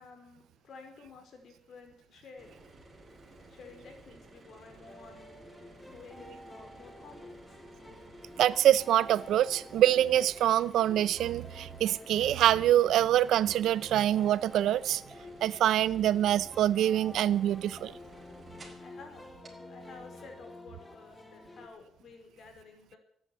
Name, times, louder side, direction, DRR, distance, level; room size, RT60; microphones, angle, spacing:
voice 1, 0.0-2.5 3.5-5.2 5.9-7.6 18.8-23.0, left 4 dB, 60° left, 5.0 m, -52 dB
sound 1, 2.4-18.9 19.4-19.5, right 2 dB, 25° right, 5.5 m, -54 dB
sound 2, 4.9-21.7, left 1 dB, 15° left, 2.5 m, -50 dB
voice 2, 8.4-15.0 15.4-17.9, right 12 dB, 80° right, 0.7 m, -25 dB
14.0 x 10.5 x 9.9 m
cardioid pair, 90°, 0 cm